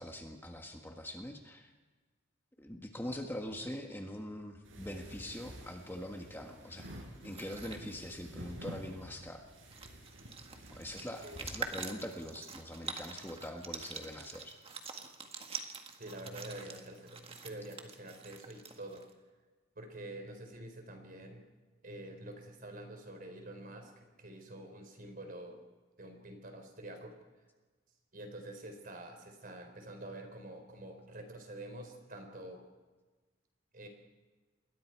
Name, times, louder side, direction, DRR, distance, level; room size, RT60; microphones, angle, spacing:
voice 1, 0.0-1.7 2.6-6.9 7.2-9.5 10.7-14.6, left 1 dB, 10° left, 2 dB, 1.6 m, -43 dB
sound 1, 4.6-11.5, right 1 dB, 85° right, 6.7 m, -50 dB
sound 2, 7.1-7.8 9.3-9.4 9.6-19.1, right 5 dB, 30° right, 1.8 m, -45 dB
voice 2, 16.0-19.0 19.8-21.4 21.8-25.6 26.0-27.1 28.1-32.6 33.7-33.9, right 1 dB, 45° right, 5 dB, 4.3 m, -47 dB
28.5 x 21.5 x 4.7 m, 1.3 s
head